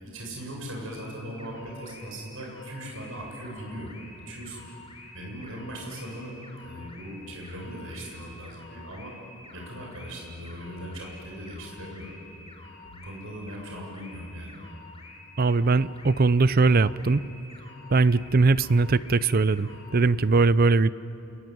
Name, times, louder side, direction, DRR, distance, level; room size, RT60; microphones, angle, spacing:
voice 1, 0.0-3.9 4.3-4.6 5.1-9.1 9.5-12.1 12.8-14.5, equal, 65° right, -1 dB, 7.6 m, -39 dB
sound 1, 0.9-20.1, left 2 dB, 30° left, 4.3 m, -49 dB
voice 2, 15.4-17.2 17.9-20.9, right 3 dB, 45° right, 17 dB, 0.5 m, -21 dB
29.5 x 21.0 x 9.3 m, 2.9 s
head